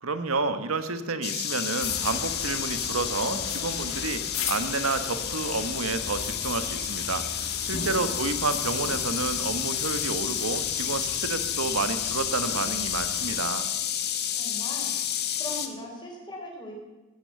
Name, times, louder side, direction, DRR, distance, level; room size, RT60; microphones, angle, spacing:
voice 1, 0.0-4.2 4.5-13.6, right 3 dB, 85° right, 10 dB, 1.4 m, -30 dB
sound 1, 1.2-15.7, left 10 dB, 50° left, 1.3 m, -30 dB
sound 2, 1.8-13.4, left 5 dB, 70° left, 2.1 m, -38 dB
voice 2, 7.9-8.4 14.3-14.9 15.4-16.8, left 1 dB, 20° left, -1 dB, 4.2 m, -40 dB
15.5 x 10.0 x 8.2 m, 1.1 s
head